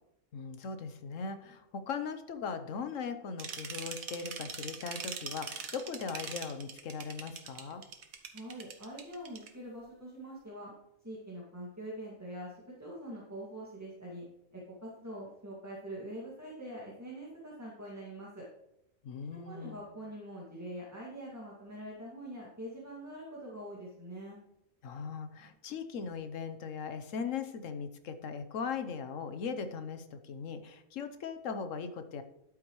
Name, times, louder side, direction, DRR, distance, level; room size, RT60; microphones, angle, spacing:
voice 1, 0.3-7.8 19.0-19.8 24.8-32.2, left 5 dB, 70° left, 8 dB, 1.2 m, -39 dB
sound 1, 3.4-9.5, right 6 dB, 85° right, 1.5 m, -42 dB
voice 2, 8.3-10.7 11.0-14.3 14.5-18.5 19.4-24.4, right 1 dB, 10° right, -5 dB, 2.1 m, -44 dB
11.0 x 8.7 x 3.1 m, 0.83 s
omnidirectional pair, 1.4 m